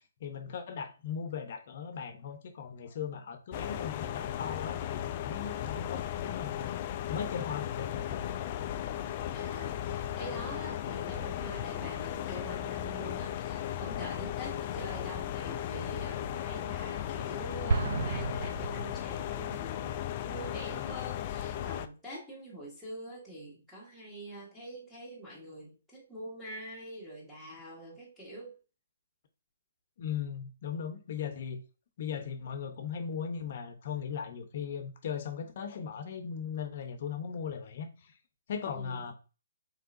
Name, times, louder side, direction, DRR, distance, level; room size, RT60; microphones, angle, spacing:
voice 1, 0.0-8.2 30.0-31.6 32.0-37.9 38.5-39.1, left 7 dB, 50° left, 0.7 m, -38 dB
sound 1, 3.5-21.9, left 11 dB, 35° left, 0.3 m, -36 dB
voice 2, 9.3-28.6 38.7-39.0, right 1 dB, ahead, 1.3 m, -45 dB
Explosion, 17.7-19.5, right 4 dB, 65° right, 0.5 m, -32 dB
4.7 x 3.3 x 2.6 m
hypercardioid pair, 150°, 0 cm